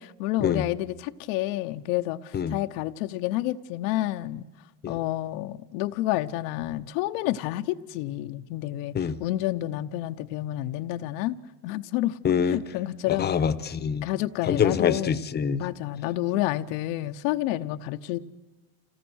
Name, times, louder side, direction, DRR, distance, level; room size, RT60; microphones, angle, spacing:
voice 1, 0.0-4.4 4.9-11.4 11.6-12.2 12.4-13.3 14.0-15.2 15.6-18.2, left 15 dB, 70° left, 7 dB, 0.9 m, -29 dB
voice 2, 12.2-12.6 13.2-14.1 14.4-15.6, left 7 dB, 25° left, 12 dB, 1.0 m, -25 dB
27.5 x 17.0 x 6.3 m, 1.2 s
cardioid pair, 140°, 43 cm